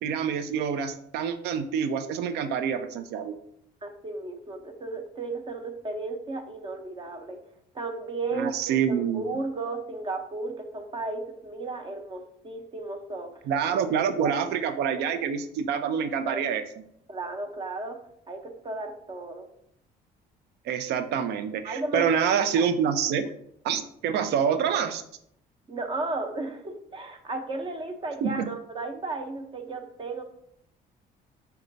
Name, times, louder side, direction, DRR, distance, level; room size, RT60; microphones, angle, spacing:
voice 1, 0.0-3.3 8.3-9.2 13.5-16.6 20.7-23.3 23.6-25.0 28.2-28.5, right 7 dB, 80° right, 9 dB, 0.5 m, -26 dB
voice 2, 3.8-7.4 7.7-8.5 8.9-13.4 14.2-14.3 16.2-16.4 17.1-18.0 18.3-19.5 21.6-22.1 22.6-22.7 25.7-30.2, right 3 dB, 30° right, 5 dB, 0.7 m, -34 dB
5.0 x 2.3 x 3.9 m, 0.71 s
cardioid pair, 110°, 17 cm